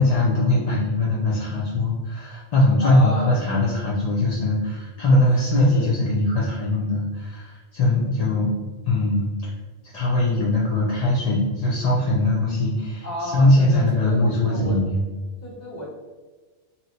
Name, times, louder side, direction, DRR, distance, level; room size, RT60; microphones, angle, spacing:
voice 1, 0.0-8.5 8.8-9.5 9.9-15.0, left 1 dB, 50° left, -5 dB, 0.4 m, -21 dB
voice 2, 2.8-3.4 5.7-5.9 13.0-14.8 15.4-15.9, left 1 dB, 15° left, -9 dB, 1.1 m, -32 dB
2.8 x 2.0 x 3.8 m, 1.3 s
omnidirectional pair, 1.2 m